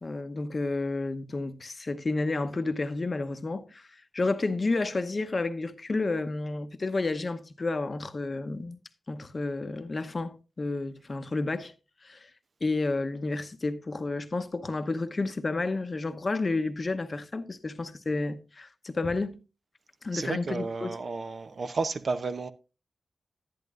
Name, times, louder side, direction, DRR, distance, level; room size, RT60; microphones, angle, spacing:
voice 1, 0.0-3.9 4.1-8.8 9.1-11.7 12.0-12.3 12.6-19.4 20.0-20.9, left 3 dB, 45° left, 0.8 m, -31 dB
voice 2, 20.1-22.5, right 4 dB, 60° right, 0.6 m, -32 dB
10.5 x 10.0 x 2.4 m
cardioid pair, 45°, 0 cm